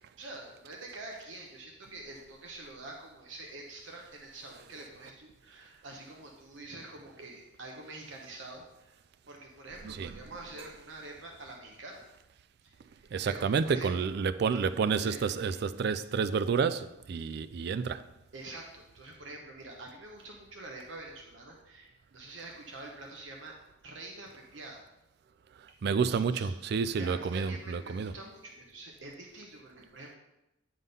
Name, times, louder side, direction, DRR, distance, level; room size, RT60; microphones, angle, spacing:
voice 1, 0.2-9.0 9.3-12.1 12.6-14.2 15.0-15.6 18.3-23.6 23.8-24.8 26.1-26.5 27.0-30.1, right 2 dB, 80° right, 1.1 m, -46 dB
voice 2, 13.1-18.1 25.6-28.1, right 5 dB, 60° right, 0.3 m, -30 dB
9.6 x 3.8 x 5.4 m
head